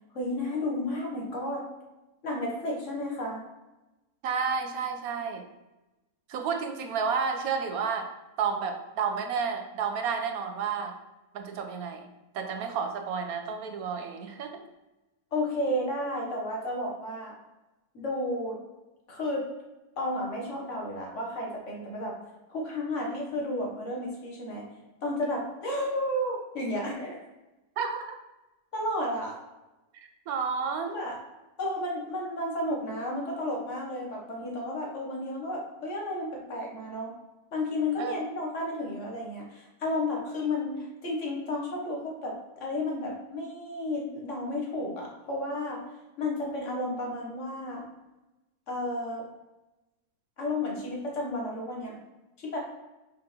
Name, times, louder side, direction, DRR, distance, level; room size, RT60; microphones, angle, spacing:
voice 1, 0.1-1.7 2.2-3.4 15.3-17.4 17.9-18.6 19.1-19.5 20.0-22.2 22.5-24.6 25.0-27.2 28.7-29.4 30.9-31.2 31.6-37.1 37.5-45.8 46.2-47.9 48.7-49.2 50.4-52.0 52.4-52.6, left 1 dB, 50° left, -1 dB, 1.5 m, -32 dB
voice 2, 4.2-5.5 6.3-8.1 8.4-10.9 11.3-12.0 12.3-14.6 27.8-28.2 30.3-31.0 38.0-38.1, right 6 dB, 70° right, 5 dB, 1.2 m, -31 dB
5.7 x 3.9 x 4.2 m, 1.0 s
omnidirectional pair, 1.7 m